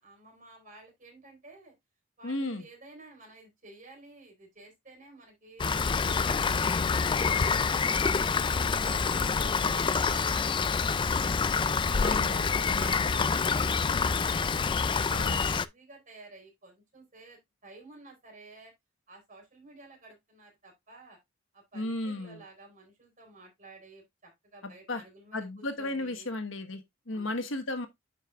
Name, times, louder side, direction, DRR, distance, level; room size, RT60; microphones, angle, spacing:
voice 1, 0.0-1.7 2.2-7.5 7.9-11.6 12.0-14.7 15.0-18.7 19.1-21.2 21.5-26.3 27.1-27.4, right 3 dB, 40° right, 3.9 m, -52 dB
voice 2, 2.2-2.6 12.0-12.9 15.1-15.4 21.7-22.4 24.6-25.0 25.3-27.9, left 2 dB, 75° left, 1.3 m, -34 dB
Rain, 5.6-15.7, left 5 dB, 25° left, 0.3 m, -27 dB
9.5 x 5.4 x 2.3 m
head